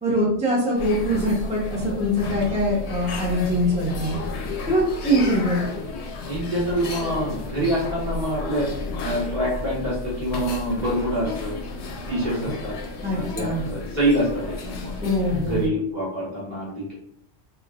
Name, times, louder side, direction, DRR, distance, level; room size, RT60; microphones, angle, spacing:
voice 1, 0.0-4.2 4.7-5.7 13.0-13.6 15.0-15.7, equal, 10° right, -6 dB, 0.6 m, -23 dB
sound 1, 0.8-15.7, left 3 dB, 75° left, 0.9 m, -32 dB
voice 2, 6.3-8.7 9.0-11.5 12.1-12.7 13.1-14.9 15.4-16.9, equal, 40° right, -7 dB, 1.3 m, -26 dB
3.4 x 2.4 x 2.3 m, 0.69 s
omnidirectional pair, 1.2 m